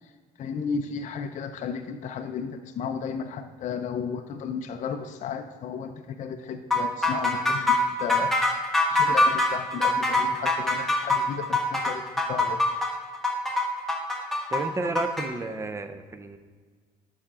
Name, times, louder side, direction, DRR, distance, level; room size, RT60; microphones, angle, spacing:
voice 1, 0.4-8.4 8.9-12.6, left 6 dB, 45° left, 6 dB, 0.4 m, -34 dB
sound 1, 6.7-15.3, left 2 dB, ahead, 1.0 m, -24 dB
voice 2, 14.5-16.4, right 3 dB, 15° right, 9 dB, 0.5 m, -31 dB
7.1 x 5.0 x 3.6 m, 1.5 s
cardioid pair, 110°, 17 cm